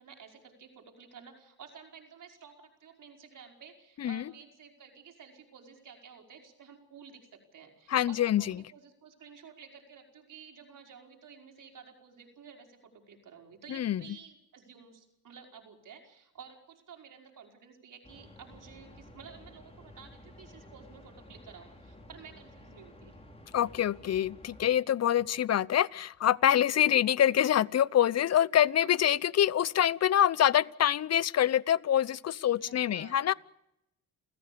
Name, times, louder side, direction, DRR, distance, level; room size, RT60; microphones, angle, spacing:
voice 1, 0.0-23.2 28.8-28.9 32.6-33.4, right 6 dB, 55° right, 2 dB, 5.3 m, -52 dB
voice 2, 7.9-8.4 13.7-14.0 23.5-33.3, left 11 dB, 45° left, 22 dB, 0.7 m, -25 dB
sound 1, 18.0-24.7, left 1 dB, 15° left, 5.2 m, -53 dB
29.5 x 15.0 x 7.0 m, 0.84 s
supercardioid pair, 75°, 37 cm